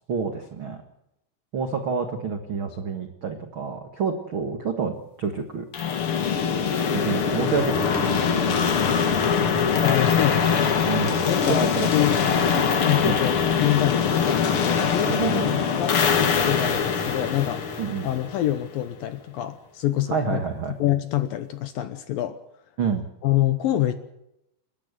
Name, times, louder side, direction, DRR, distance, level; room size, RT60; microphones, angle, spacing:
voice 1, 0.1-0.8 1.5-5.6 6.9-8.5 10.9-12.0 13.0-13.2 15.1-15.6 16.7-16.8 17.8-18.1 20.1-20.7 22.8-23.1, right 5 dB, 65° right, 6 dB, 1.2 m, -28 dB
sound 1, 5.7-18.6, left 6 dB, 55° left, 1.6 m, -23 dB
voice 2, 9.8-10.8 11.2-12.2 12.8-17.6 18.0-20.4 20.8-22.4 23.2-23.9, left 13 dB, 75° left, 11 dB, 2.3 m, -26 dB
29.5 x 12.0 x 8.1 m, 0.84 s
omnidirectional pair, 5.0 m